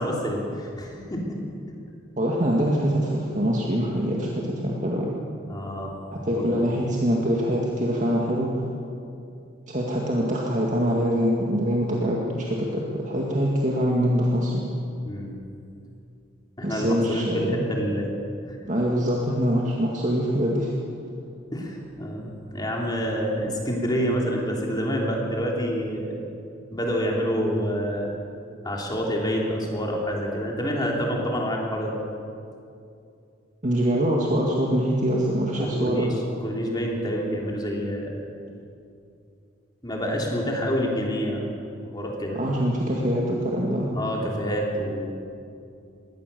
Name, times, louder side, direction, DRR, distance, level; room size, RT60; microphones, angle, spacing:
voice 1, 0.0-1.4 5.5-5.9 6.3-6.6 15.1-15.3 16.6-18.1 18.5-18.6 21.5-26.3 26.7-28.1 28.6-31.9 35.6-38.1 39.8-41.4 41.8-42.4 43.9-45.1, equal, 20° left, -1 dB, 3.2 m, -27 dB
voice 2, 2.2-5.1 6.3-8.7 9.7-14.6 16.6-17.6 18.7-20.7 33.6-36.1 42.3-43.9, equal, 40° right, -2 dB, 2.0 m, -24 dB
21.5 x 17.5 x 6.9 m, 2.6 s
head